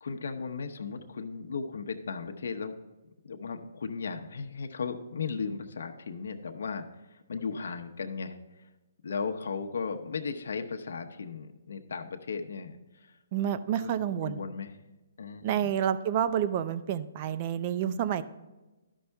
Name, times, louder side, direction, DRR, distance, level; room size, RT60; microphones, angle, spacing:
voice 1, 0.0-2.7 3.2-8.7 9.0-13.2 13.8-14.7 15.2-15.7, left 5 dB, 70° left, 5 dB, 0.8 m, -36 dB
voice 2, 13.3-14.4 15.4-18.2, right 9 dB, 35° right, 12 dB, 0.5 m, -29 dB
12.5 x 5.4 x 3.5 m, 1.1 s
hypercardioid pair, 155°, 0 cm